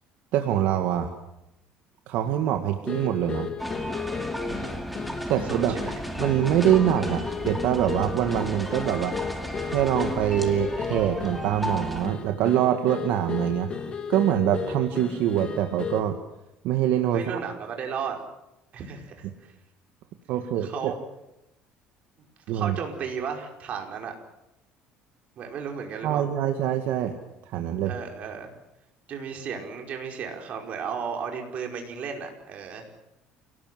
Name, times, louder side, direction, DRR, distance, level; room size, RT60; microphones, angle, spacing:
voice 1, 0.3-1.1 2.1-3.5 5.3-5.8 6.2-9.1 9.7-13.7 14.1-16.2 16.6-17.2 20.3-20.9 22.5-22.8 26.0-27.2 27.5-28.0, right 11 dB, 70° right, 5 dB, 1.9 m, -24 dB
sound 1, 2.9-16.2, left 6 dB, 30° left, 2.8 m, -35 dB
sound 2, 3.6-12.1, equal, ahead, 2.4 m, -34 dB
voice 2, 5.3-5.9 17.1-18.2 18.7-19.5 20.6-21.0 22.5-24.1 25.4-26.2 27.9-28.5 29.1-32.9, right 6 dB, 45° right, 3 dB, 5.1 m, -34 dB
28.5 x 18.5 x 7.7 m, 0.89 s
cardioid pair, 145°, 3 cm